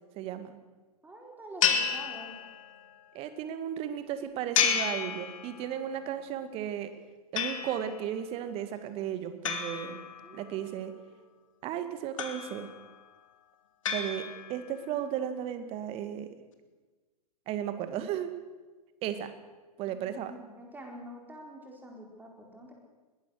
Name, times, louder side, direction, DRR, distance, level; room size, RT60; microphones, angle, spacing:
voice 1, 0.2-0.6 3.1-6.9 7.3-10.0 10.3-10.9 11.6-12.7 13.9-16.3 17.5-18.3 19.0-19.3 19.8-20.3, right 10 dB, 30° right, 10 dB, 2.0 m, -35 dB
voice 2, 1.0-2.4 10.2-11.3 19.9-22.7, right 1 dB, 10° right, 1 dB, 4.4 m, -47 dB
sound 1, 1.6-2.8 4.5-5.8 7.4-8.1 9.4-10.6 12.2-12.9 13.8-14.7, left 7 dB, 55° left, 2.7 m, -31 dB
22.0 x 19.0 x 6.5 m, 1.3 s
figure-of-eight pair, 105°, 20 cm